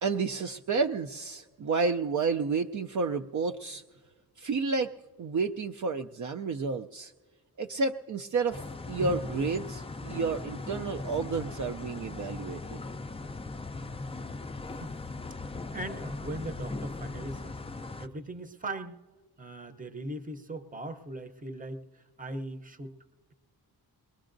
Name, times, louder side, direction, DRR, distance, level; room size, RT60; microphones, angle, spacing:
voice 1, 0.0-3.8 4.4-4.9 5.2-7.1 7.6-12.8, right 4 dB, 50° right, 5 dB, 0.4 m, -30 dB
sound 1, 8.5-18.1, left 3 dB, 15° left, 0.4 m, -39 dB
voice 2, 15.4-17.6 18.0-19.0 19.4-23.0, right 2 dB, 20° right, 8 dB, 0.7 m, -40 dB
22.5 x 20.5 x 2.6 m, 1.4 s
wide cardioid pair, 110°, 38 cm